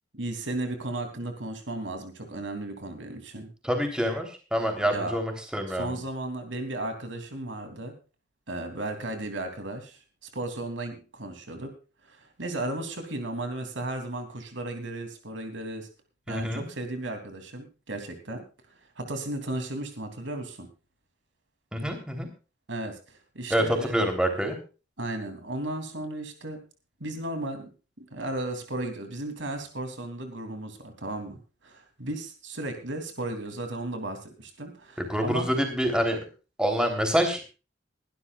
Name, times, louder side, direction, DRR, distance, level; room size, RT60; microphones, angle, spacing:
voice 1, 0.1-3.5 4.9-5.2 5.8-7.9 8.5-11.7 12.0-15.9 16.3-18.4 19.0-20.7 22.7-24.1 25.0-26.6 27.0-27.7 28.0-35.5, right 2 dB, 85° right, 5 dB, 3.0 m, -35 dB
voice 2, 3.6-6.0 16.3-16.7 21.7-22.3 23.5-24.6 35.0-36.2 36.6-37.5, equal, 5° right, 3 dB, 3.4 m, -26 dB
22.0 x 12.0 x 2.4 m, 0.33 s
head